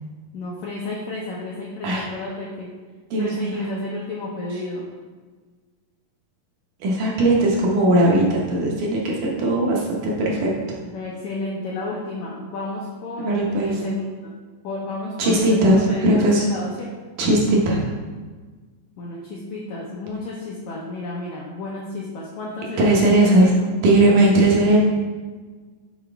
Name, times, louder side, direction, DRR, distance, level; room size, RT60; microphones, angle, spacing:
voice 1, 0.3-2.7 3.2-4.9 10.8-13.3 13.6-14.3 14.6-16.9 19.0-23.7 24.2-24.4, left 2 dB, 80° left, -4 dB, 1.7 m, -32 dB
voice 2, 3.1-3.6 6.8-10.5 13.2-13.7 15.2-16.4 17.2-17.9 22.8-23.5 23.8-24.8, right 1 dB, 70° right, -3 dB, 2.2 m, -18 dB
7.9 x 4.3 x 3.4 m, 1.4 s
omnidirectional pair, 4.3 m